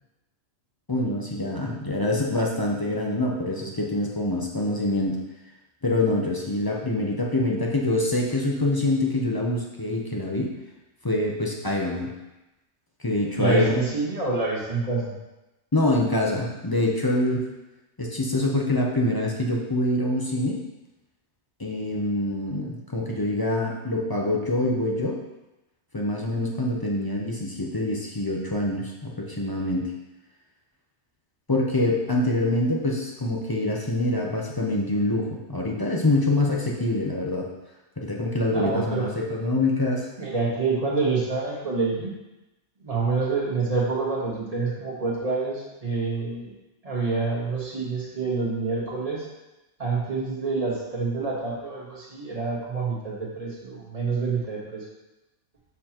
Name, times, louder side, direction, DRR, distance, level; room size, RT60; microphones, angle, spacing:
voice 1, 0.9-5.2 5.8-10.5 11.0-12.1 13.0-13.8 15.7-17.4 18.0-20.6 21.6-25.2 25.9-29.9 31.5-37.5 38.0-40.1, left 1 dB, 25° left, -1 dB, 0.5 m, -25 dB
voice 2, 13.4-15.1 38.5-39.1 40.2-42.1 42.8-46.5 46.8-49.3 49.8-54.8, right 4 dB, 30° right, -5 dB, 1.6 m, -27 dB
6.7 x 6.0 x 2.9 m, 1.0 s
omnidirectional pair, 1.4 m